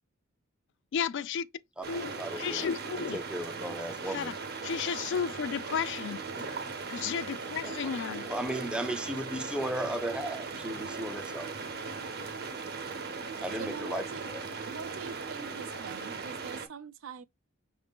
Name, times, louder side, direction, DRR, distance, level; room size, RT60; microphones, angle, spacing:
voice 1, 0.9-1.5 1.9-2.1 2.4-3.2 4.1-4.3 4.6-6.2 6.9-8.3, left 7 dB, 60° left, 0.3 m, -33 dB
voice 2, 1.8-2.7 3.1-4.3 6.4-6.8 7.6-7.9 8.2-11.6 13.4-14.4, right 1 dB, 5° right, 0.5 m, -36 dB
sound 1, 1.8-16.7, right 4 dB, 50° right, 0.8 m, -38 dB
voice 3, 13.6-14.2 14.6-17.2, right 6 dB, 65° right, 0.4 m, -43 dB
5.8 x 2.6 x 3.5 m
head